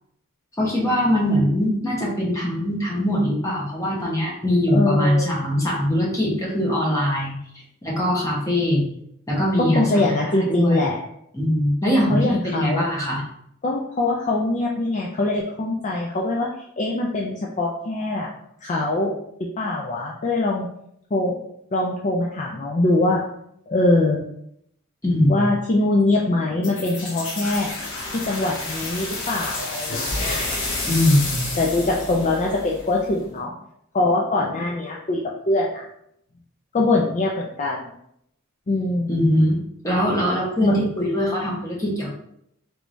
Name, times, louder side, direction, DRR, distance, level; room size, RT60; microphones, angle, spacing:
voice 1, 0.6-7.4 7.8-8.9 9.3-10.0 10.5-10.8 11.3-13.2 25.0-25.4 30.9-31.5 39.1-39.6 39.8-42.1, left 1 dB, 15° left, -4 dB, 1.0 m, -21 dB
voice 2, 4.7-5.3 9.7-11.0 12.1-12.9 13.6-16.5 16.8-18.3 18.6-19.1 19.6-20.7 21.1-21.3 21.7-23.2 23.7-24.2 25.3-27.7 28.1-30.5 31.6-33.5 33.9-35.2 35.5-35.8 36.7-37.9 38.7-39.1 40.6-40.8, left 2 dB, 35° left, -2 dB, 0.4 m, -22 dB
sound 1, 26.6-33.2, left 2 dB, 65° left, 0.9 m, -30 dB
3.3 x 3.1 x 2.6 m, 0.72 s
head